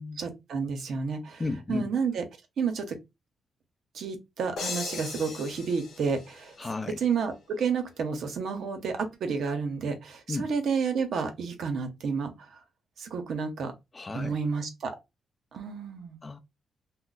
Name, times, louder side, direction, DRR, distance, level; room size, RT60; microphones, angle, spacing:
voice 1, 0.2-1.4 1.7-2.2 2.6-3.0 3.9-6.5 7.0-12.5 13.0-13.7 14.1-14.9 15.5-16.2, right 5 dB, 75° right, 0.7 m, -30 dB
voice 2, 1.4-1.9 6.6-7.0 10.3-10.5 13.9-14.3 16.2-16.4, left 3 dB, 30° left, 0.4 m, -33 dB
sound 1, 4.6-7.2, left 4 dB, 80° left, 0.7 m, -38 dB
2.3 x 2.0 x 3.9 m
cardioid pair, 95°, 0 cm